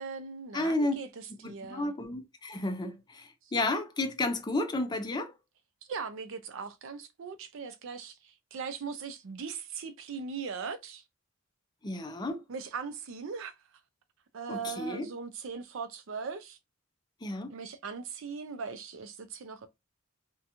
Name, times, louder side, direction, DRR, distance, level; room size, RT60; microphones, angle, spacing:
voice 1, 0.0-1.9 3.4-3.5 5.9-11.0 12.5-13.5 14.3-16.6 17.5-19.7, right 5 dB, 65° right, 0.4 m, -39 dB
voice 2, 0.5-0.9 1.3-5.3 11.8-12.4 14.5-15.1 17.2-17.5, left 2 dB, 20° left, 0.4 m, -32 dB
2.8 x 2.1 x 2.5 m
head